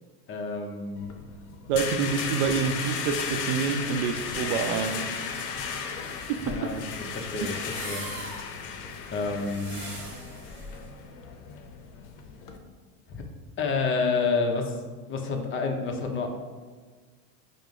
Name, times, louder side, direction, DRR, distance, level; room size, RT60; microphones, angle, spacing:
voice 1, 0.3-1.1 6.4-8.0 9.1-9.9 13.1-13.2 13.6-14.8 15.1-16.3, left 4 dB, 25° left, 3 dB, 0.5 m, -29 dB
sound 1, 1.0-12.6, left 6 dB, 70° left, 0.6 m, -35 dB
voice 2, 1.7-5.0 6.3-6.7 7.4-7.7, right 6 dB, 65° right, 8 dB, 0.5 m, -27 dB
sound 2, 5.8-10.9, right 1 dB, 25° right, 1.1 m, -43 dB
4.9 x 2.0 x 3.5 m, 1.5 s
hypercardioid pair, 95°, 49 cm